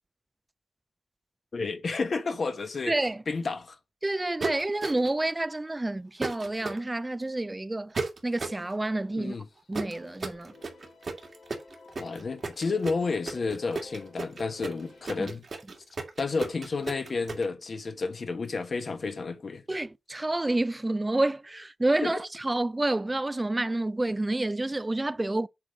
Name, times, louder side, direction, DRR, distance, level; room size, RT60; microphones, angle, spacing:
voice 1, 1.5-2.9 3.3-3.8 9.2-9.4 12.0-15.4 16.2-19.6 22.0-22.1, left 4 dB, 70° left, 1.5 m, -31 dB
voice 2, 2.9-3.2 4.0-7.9 8.2-9.3 9.7-10.5 15.2-15.3 19.7-25.5, right 2 dB, 30° right, 0.5 m, -29 dB
sound 1, 4.4-5.2 6.2-6.8 7.9-8.6 9.7-17.4, right 3 dB, 65° right, 2.3 m, -34 dB
sound 2, 8.3-9.6 9.9-15.1, left 3 dB, 85° left, 2.8 m, -53 dB
8.4 x 3.5 x 5.3 m
cardioid pair, 40°, 0 cm